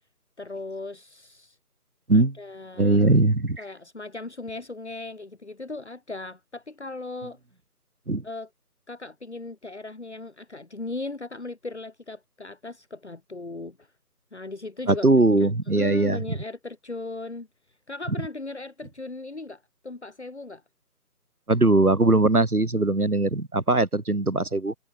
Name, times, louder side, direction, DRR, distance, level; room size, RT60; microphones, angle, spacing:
voice 1, 0.4-1.6 2.1-3.1 3.6-7.4 8.2-8.5 8.9-13.9 14.3-15.1 15.4-17.5 17.9-20.6, left 2 dB, 45° left, 2.8 m, -37 dB
voice 2, 2.8-3.6 8.1-8.2 14.9-16.2 21.5-24.7, right 2 dB, 65° right, 4.8 m, -20 dB
figure-of-eight pair, 170°, 47 cm